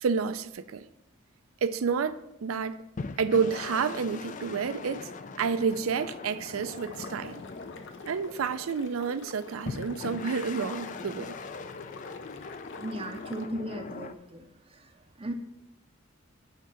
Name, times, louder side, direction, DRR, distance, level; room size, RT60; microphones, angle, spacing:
voice 1, 0.0-0.9 1.6-2.8 3.2-5.1 5.4-7.4 8.1-11.3, right 5 dB, 90° right, 0.4 m, -29 dB
sound 1, 3.0-8.9 9.6-14.1, left 4 dB, 40° left, 0.4 m, -41 dB
sound 2, 6.6-13.5, left 3 dB, 60° left, 0.7 m, -46 dB
voice 2, 12.7-14.4 14.7-14.9 15.2-15.3, right 1 dB, 25° right, 0.6 m, -36 dB
9.3 x 3.7 x 6.8 m
head